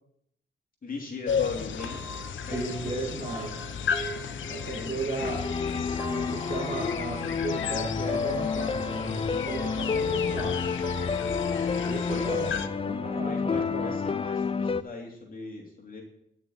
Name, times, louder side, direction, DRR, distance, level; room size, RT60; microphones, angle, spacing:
voice 1, 0.8-3.6 4.6-5.4 12.2-16.0, left 3 dB, 45° left, -1 dB, 3.0 m, -42 dB
sound 1, 1.3-12.7, left 7 dB, 90° left, 0.8 m, -34 dB
sound 2, 1.8-14.4, right 2 dB, 10° right, 2.0 m, -44 dB
voice 2, 2.5-3.5 4.5-5.4 6.1-10.6 11.9-12.5 12.8-13.9, right 3 dB, 40° right, -2 dB, 2.4 m, -35 dB
sound 3, 5.2-14.8, left 5 dB, 30° left, 0.5 m, -29 dB
11.5 x 6.5 x 9.2 m, 0.75 s
cardioid pair, 95°, 19 cm